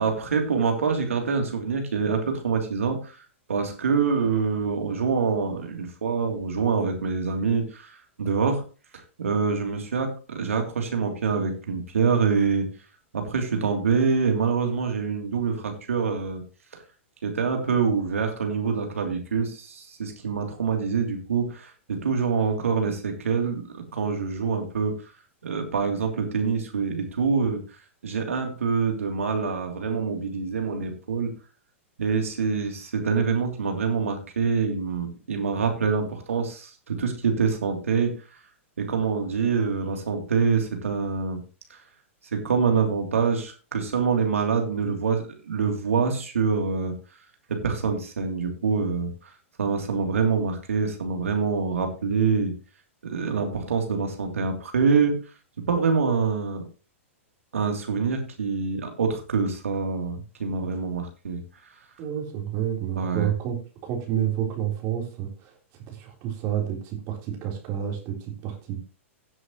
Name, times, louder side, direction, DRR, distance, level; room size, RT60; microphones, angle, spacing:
voice 1, 0.0-3.2 3.5-8.6 9.2-12.7 13.1-16.4 16.7-16.8 17.2-24.9 25.4-27.6 28.0-31.3 32.0-38.1 38.8-41.4 41.7-41.8 42.3-46.9 47.5-49.3 49.6-52.5 53.0-55.2 55.7-56.6 57.5-61.4 62.9-63.3, right 5 dB, 80° right, 4 dB, 3.0 m, -25 dB
voice 2, 62.0-63.6 63.8-65.5 65.9-68.8, right 10 dB, 40° right, 1 dB, 3.7 m, -29 dB
16.5 x 7.9 x 3.0 m, 0.33 s
hypercardioid pair, 110°, 7 cm